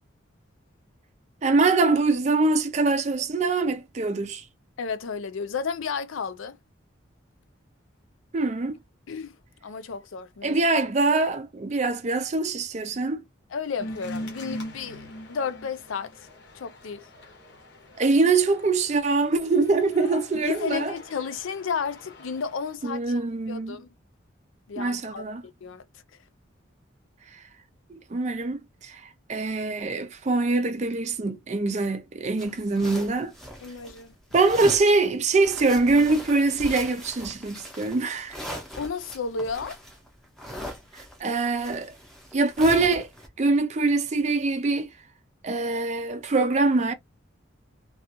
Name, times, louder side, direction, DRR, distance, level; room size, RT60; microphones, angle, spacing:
voice 1, 1.4-4.4 8.3-8.7 10.4-13.2 18.0-20.9 22.8-23.8 24.8-25.4 27.9-33.3 34.3-38.4 41.2-41.9 42.3-43.1 43.4-44.9 45.4-46.9, right 3 dB, 35° right, 0.4 m, -23 dB
voice 2, 4.8-6.6 9.1-9.4 9.6-10.6 13.5-16.1 16.5-17.1 20.4-23.2 23.5-23.9 24.7-25.8 33.6-34.2 38.8-39.8, left 5 dB, 80° left, 0.5 m, -32 dB
sound 1, 13.8-22.7, left 1 dB, 60° left, 0.8 m, -42 dB
sound 2, 32.4-34.0 34.3-34.9 35.3-43.3, equal, ahead, 0.7 m, -40 dB
2.4 x 2.3 x 2.7 m
head